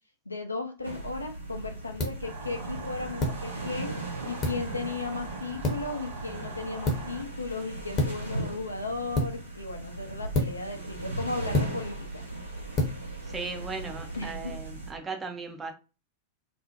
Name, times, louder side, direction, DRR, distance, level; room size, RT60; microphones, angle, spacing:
voice 1, 0.3-4.0 4.2-12.2 14.2-14.6, left 3 dB, 85° left, 0.5 m, -35 dB
sound 1, 0.8-14.3, left 1 dB, 30° left, 0.7 m, -34 dB
sound 2, 0.8-14.9, right 2 dB, 80° right, 0.7 m, -38 dB
sound 3, 2.2-7.2, right 4 dB, 45° right, 0.7 m, -44 dB
voice 2, 13.2-15.7, right 4 dB, 15° right, 0.4 m, -37 dB
2.5 x 2.1 x 2.7 m
figure-of-eight pair, 90°, 0 cm